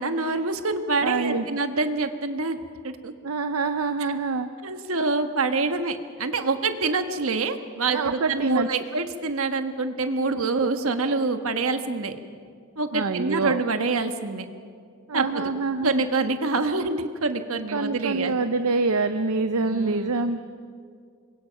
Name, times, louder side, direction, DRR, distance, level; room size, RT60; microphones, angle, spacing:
voice 1, 0.0-3.1 4.6-12.1 12.8-14.4 15.1-15.5 15.8-18.3 19.6-20.1, right 3 dB, 70° right, 7 dB, 1.4 m, -26 dB
voice 2, 1.0-1.5 3.2-4.5 7.9-8.7 12.9-13.6 15.1-16.0 17.7-20.4, right 3 dB, 90° right, 9 dB, 0.7 m, -25 dB
27.0 x 22.5 x 5.8 m, 2.2 s
head